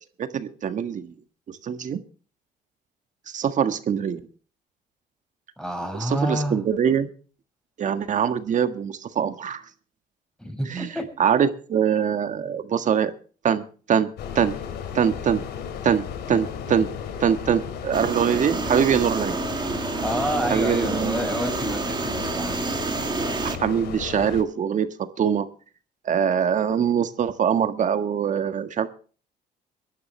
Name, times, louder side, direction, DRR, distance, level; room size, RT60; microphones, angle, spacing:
voice 1, 0.2-1.1 1.6-2.0 3.3-4.2 6.0-7.1 7.8-9.6 10.7-13.1 13.4-14.1 14.4-14.5 14.9-15.4 15.8-16.9 17.2-19.4 20.5-21.3 23.4-25.5 26.1-28.9, right 8 dB, 45° right, 9 dB, 1.7 m, -23 dB
voice 2, 5.6-6.6 10.4-11.1 20.0-22.7, equal, 5° left, 4 dB, 6.6 m, -28 dB
sound 1, 14.2-24.4, left 7 dB, 80° left, 2.9 m, -34 dB
sound 2, 17.9-23.6, right 4 dB, 25° right, 2.0 m, -29 dB
23.0 x 11.5 x 3.3 m, 0.39 s
cardioid pair, 110°, 17 cm